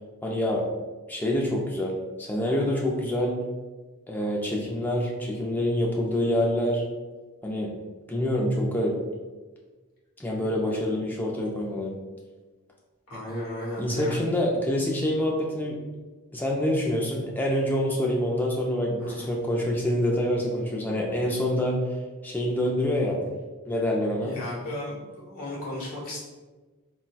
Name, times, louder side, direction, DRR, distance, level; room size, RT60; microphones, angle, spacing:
voice 1, 0.2-0.7 1.1-3.4 4.1-6.8 7.4-7.7 8.1-9.0 10.2-12.0 13.8-15.8 16.3-21.8 22.2-23.2 23.7-24.3, left 1 dB, 10° left, -1 dB, 0.3 m, -26 dB
voice 2, 13.1-14.2 19.0-19.3 24.2-26.2, left 1 dB, 90° left, -6 dB, 1.2 m, -35 dB
3.9 x 2.2 x 2.3 m, 1.3 s
head